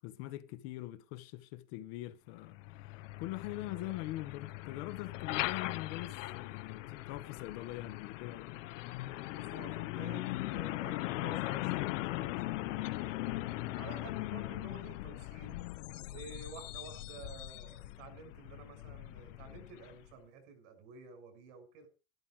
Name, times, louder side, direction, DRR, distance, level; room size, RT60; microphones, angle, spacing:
voice 1, 0.0-2.9 3.2-8.6, left 16 dB, 55° left, 1.4 m, -43 dB
Truck, 2.4-20.1, left 17 dB, 80° left, 1.1 m, -40 dB
voice 2, 9.4-15.6 16.1-21.9, right 4 dB, 70° right, 6.9 m, -52 dB
13.5 x 12.5 x 4.9 m
supercardioid pair, 165°, 37 cm